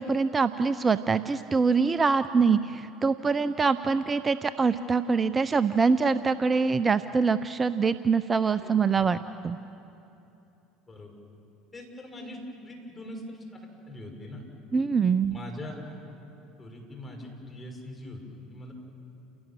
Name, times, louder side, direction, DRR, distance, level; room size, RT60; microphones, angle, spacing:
voice 1, 0.0-9.6 14.7-15.4, right 5 dB, 25° right, 13 dB, 0.6 m, -24 dB
voice 2, 11.7-14.4 15.3-16.0 16.6-18.7, left 1 dB, 20° left, 2 dB, 6.0 m, -42 dB
29.0 x 17.5 x 7.5 m, 2.9 s
hypercardioid pair, 75°, 0 cm